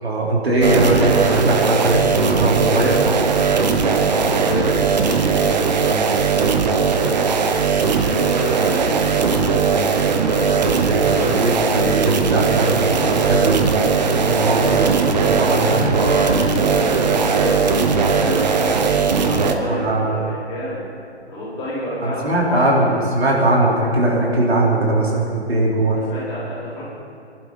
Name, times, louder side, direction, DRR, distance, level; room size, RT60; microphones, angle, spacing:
voice 1, 0.0-3.0 10.8-10.9 11.3-15.9 19.7-20.2 22.0-26.0, right 1 dB, 65° right, -3 dB, 3.8 m, -20 dB
sound 1, 0.6-19.5, right 5 dB, 40° right, 1.1 m, -18 dB
voice 2, 4.1-5.5 5.7-6.5 7.9-12.6 15.9-18.8 19.2-20.8 21.2-22.9 26.1-26.8, equal, 15° left, -10 dB, 4.8 m, -29 dB
24.0 x 12.0 x 4.1 m, 2.5 s
figure-of-eight pair, 140°, 33 cm